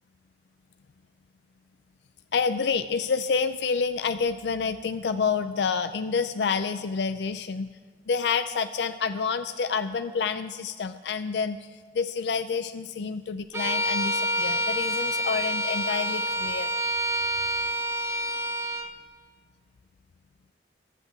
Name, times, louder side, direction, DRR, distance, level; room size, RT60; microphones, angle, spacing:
voice 1, 2.3-7.7 8.1-11.7 11.9-16.7, left 5 dB, 75° left, 10 dB, 0.4 m, -28 dB
Bowed string instrument, 13.5-18.9, equal, 15° right, 0.7 m, -28 dB
12.0 x 8.3 x 8.1 m, 1.4 s
head